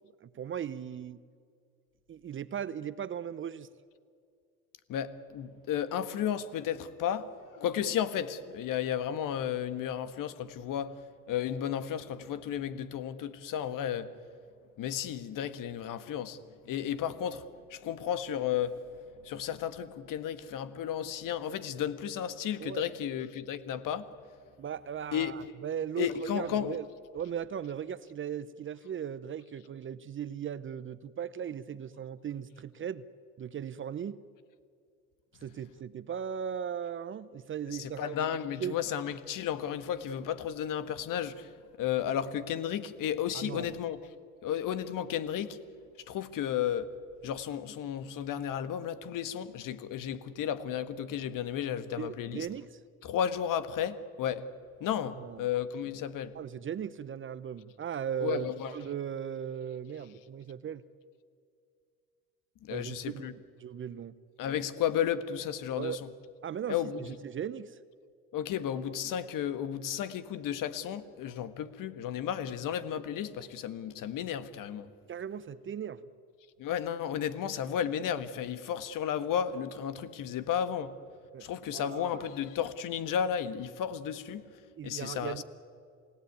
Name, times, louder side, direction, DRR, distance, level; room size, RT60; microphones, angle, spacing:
voice 1, 0.2-1.2 2.1-3.7 22.6-23.0 24.6-26.1 26.3-26.9 27.1-33.0 33.4-34.2 35.4-38.8 43.3-43.7 52.0-52.8 55.2-55.5 56.3-58.5 58.7-60.8 62.7-63.3 63.6-64.1 65.8-66.0 66.4-67.8 75.1-76.1 81.3-81.5 81.7-82.2 84.8-85.4, right 8 dB, 30° right, 0.8 m, -38 dB
voice 2, 4.9-11.0 11.3-14.1 14.8-16.4 16.6-18.8 19.2-24.1 25.1-25.5 26.0-26.8 37.7-41.5 41.8-44.0 44.4-45.6 46.1-46.9 47.2-52.5 53.0-54.5 54.8-56.3 58.2-58.7 62.6-63.3 64.4-66.1 66.7-67.1 68.3-74.9 76.6-81.0 81.4-84.5 84.8-85.4, left 9 dB, 50° left, 1.6 m, -33 dB
28.0 x 17.0 x 9.3 m
hypercardioid pair, 85°, 42 cm